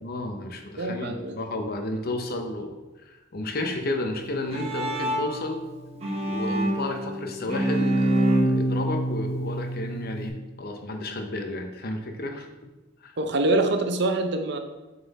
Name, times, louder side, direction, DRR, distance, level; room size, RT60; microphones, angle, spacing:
voice 1, 0.0-5.6 6.2-10.3 10.6-12.5 13.0-13.2, left 2 dB, 50° left, 5 dB, 0.8 m, -32 dB
voice 2, 0.8-1.4 13.2-14.6, right 2 dB, 60° right, 5 dB, 0.7 m, -24 dB
Bowed string instrument, 4.2-10.3, right 1 dB, 30° right, 1.1 m, -26 dB
7.0 x 3.9 x 4.1 m, 1.1 s
head